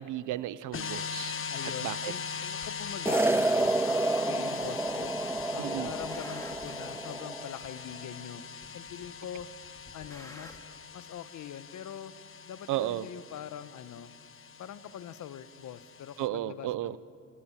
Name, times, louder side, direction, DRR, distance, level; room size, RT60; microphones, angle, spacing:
voice 1, 0.0-1.4 1.8-2.1 5.6-5.9 12.7-13.1 16.2-17.0, right 14 dB, 80° right, 17 dB, 0.9 m, -33 dB
sound 1, 0.7-16.3, left 6 dB, 45° left, 1.4 m, -41 dB
voice 2, 1.5-5.1 5.5-8.4 8.7-9.5 9.9-10.6 10.9-12.1 12.5-14.1 14.6-17.0, left 10 dB, 70° left, 13 dB, 1.2 m, -43 dB
sound 2, 2.6-2.7 3.6-3.7 4.6-5.1 5.4-6.8 7.6-7.7 8.6-9.1 9.4-10.6, left 1 dB, 10° left, 3.5 m, -51 dB
sound 3, 3.1-7.5, right 2 dB, 10° right, 0.6 m, -29 dB
29.5 x 27.0 x 7.3 m, 2.4 s
cardioid pair, 90°, 30 cm